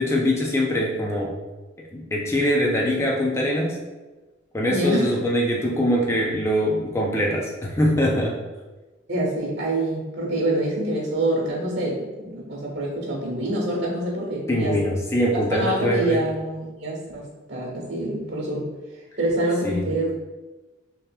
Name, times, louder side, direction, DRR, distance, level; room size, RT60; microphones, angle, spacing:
voice 1, 0.0-1.3 1.9-3.8 4.5-8.4 14.5-16.2 19.6-19.9, equal, 15° left, -2 dB, 0.4 m, -23 dB
voice 2, 4.7-5.1 9.1-14.7 15.5-18.7 19.2-20.1, right 1 dB, 55° right, -2 dB, 1.4 m, -26 dB
6.5 x 2.8 x 2.2 m, 1.2 s
head